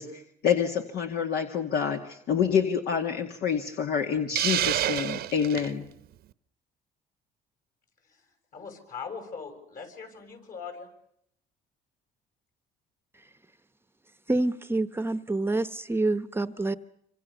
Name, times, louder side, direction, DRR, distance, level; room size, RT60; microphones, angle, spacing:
voice 1, 0.0-5.8, left 7 dB, 70° left, 4 dB, 2.1 m, -27 dB
Hiss, 4.3-5.7, right 13 dB, 65° right, 0.9 m, -28 dB
voice 2, 8.0-10.9, left 5 dB, 55° left, 6 dB, 7.4 m, -41 dB
voice 3, 14.3-16.7, right 2 dB, 15° right, 12 dB, 0.9 m, -27 dB
26.5 x 26.5 x 6.9 m, 0.72 s
cardioid pair, 110°, 17 cm